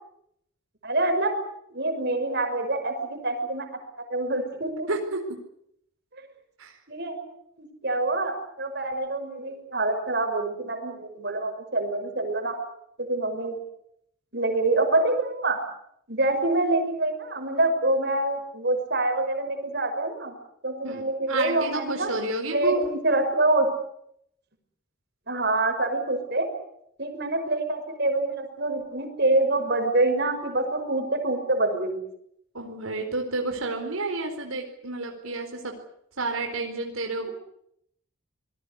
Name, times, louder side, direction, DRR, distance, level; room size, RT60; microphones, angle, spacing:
voice 1, 0.8-1.4 1.7-3.7 4.1-4.9 6.1-6.3 6.9-7.2 7.6-12.6 13.0-13.6 14.3-15.6 16.1-20.3 20.6-22.1 22.5-23.7 25.3-26.5 27.0-32.0 37.2-37.3, right 2 dB, 50° right, 5 dB, 5.9 m, -26 dB
voice 2, 4.9-5.4 6.6-6.7 20.8-22.8 32.5-35.7 36.2-37.3, right 2 dB, 85° right, 3 dB, 4.4 m, -30 dB
26.0 x 20.5 x 8.3 m, 0.73 s
head